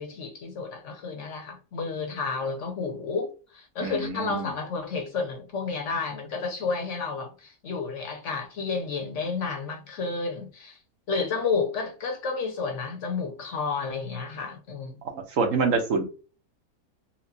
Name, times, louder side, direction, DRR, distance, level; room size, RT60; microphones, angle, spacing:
voice 1, 0.0-10.8 11.1-15.0, left 4 dB, 60° left, 0.9 m, -31 dB
voice 2, 3.8-4.5 15.3-16.0, right 4 dB, 65° right, 1.2 m, -25 dB
4.3 x 2.2 x 2.7 m
omnidirectional pair, 1.6 m